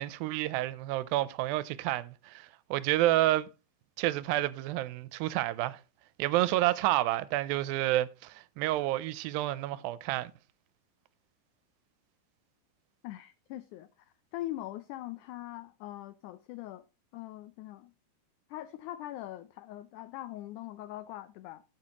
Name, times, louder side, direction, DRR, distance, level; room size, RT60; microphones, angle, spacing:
voice 1, 0.0-3.5 4.0-5.8 6.2-10.3, right 15 dB, 85° right, 2.3 m, -29 dB
voice 2, 13.0-16.8 17.1-17.9 18.5-21.6, left 15 dB, 90° left, 1.7 m, -42 dB
12.0 x 7.6 x 2.9 m
omnidirectional pair, 4.1 m